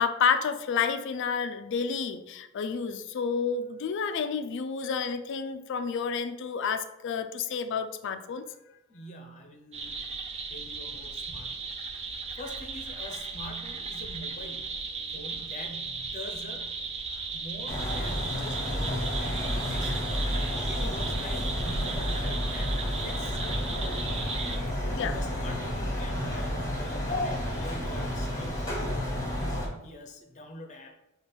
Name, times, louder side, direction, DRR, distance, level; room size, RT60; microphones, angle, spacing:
voice 1, 0.0-8.5 20.8-20.9 21.3-21.4 24.9-25.2, left 6 dB, 60° left, 10 dB, 0.3 m, -30 dB
voice 2, 8.9-10.0 10.5-11.7 12.1-14.8 15.1-16.8 17.3-20.2 20.7-24.2 25.0-30.9, equal, 35° left, 3 dB, 0.7 m, -44 dB
sound 1, 9.7-24.6, right 4 dB, 30° right, 0.4 m, -36 dB
sound 2, 17.7-29.7, equal, 15° left, 1.1 m, -31 dB
5.8 x 2.4 x 3.4 m, 0.91 s
head